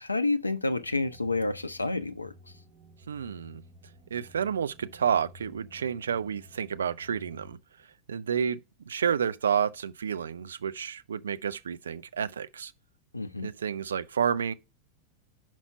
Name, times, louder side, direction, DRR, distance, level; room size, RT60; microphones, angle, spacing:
voice 1, 0.0-2.3 13.1-13.5, left 2 dB, 80° left, 0.4 m, -29 dB
sound 1, 0.7-7.6, equal, 30° right, 1.4 m, -53 dB
voice 2, 3.1-3.6 4.1-7.6 8.1-8.6 8.9-12.7 13.4-14.5, right 7 dB, 70° right, 0.4 m, -30 dB
5.6 x 4.5 x 5.6 m
figure-of-eight pair, 90°, 0 cm